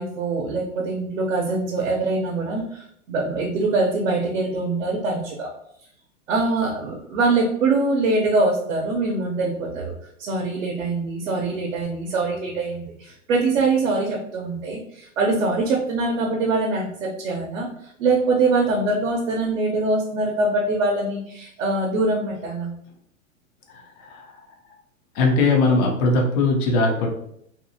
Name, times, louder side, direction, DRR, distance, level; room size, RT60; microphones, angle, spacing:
voice 1, 0.0-5.5 6.3-9.9 10.2-22.7, right 3 dB, 60° right, 0 dB, 0.7 m, -23 dB
voice 2, 25.2-27.1, left 3 dB, 20° left, 1 dB, 0.4 m, -19 dB
2.7 x 2.6 x 2.6 m, 0.72 s
figure-of-eight pair, 105°, 41 cm